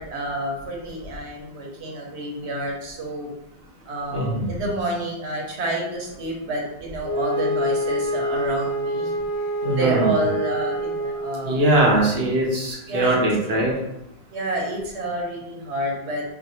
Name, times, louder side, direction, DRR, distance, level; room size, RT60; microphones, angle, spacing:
voice 1, 0.0-3.3 3.9-9.1 9.8-11.7 12.9-13.2 14.3-16.2, right 1 dB, 85° right, -2 dB, 1.1 m, -29 dB
voice 2, 4.1-4.6 9.6-10.1 11.4-13.7, right 1 dB, 70° right, -3 dB, 1.1 m, -21 dB
Wind instrument woodwind instrument, 7.0-11.6, equal, 30° left, 0.4 m, -26 dB
2.6 x 2.4 x 4.1 m, 0.84 s
omnidirectional pair, 1.1 m